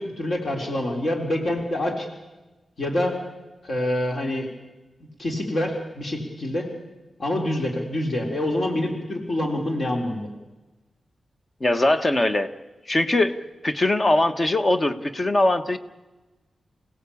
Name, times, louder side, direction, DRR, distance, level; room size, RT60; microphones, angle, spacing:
voice 1, 0.0-2.1 2.8-3.2 3.6-4.5 5.2-6.7 7.2-10.3, left 1 dB, 45° left, 2 dB, 3.9 m, -26 dB
voice 2, 11.6-12.5 12.8-13.4 13.6-15.8, left 2 dB, 25° left, 8 dB, 1.3 m, -21 dB
28.0 x 17.0 x 8.6 m, 1.1 s
wide cardioid pair, 150°, 0 cm